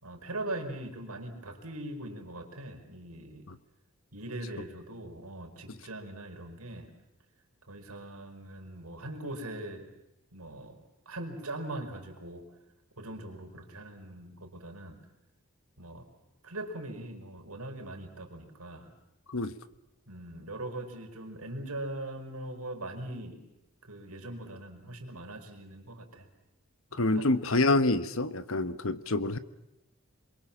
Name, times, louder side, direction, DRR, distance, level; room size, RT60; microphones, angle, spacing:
voice 1, 0.0-3.5 4.1-6.9 7.7-9.9 10.3-10.8 11.1-12.4 13.0-15.0 15.8-16.1 16.4-18.9 20.1-23.4 23.8-26.3 26.9-27.3, right 1 dB, 85° right, 3 dB, 5.3 m, -41 dB
voice 2, 26.9-29.4, left 2 dB, 65° left, 13 dB, 1.3 m, -27 dB
27.0 x 23.5 x 7.4 m, 0.90 s
head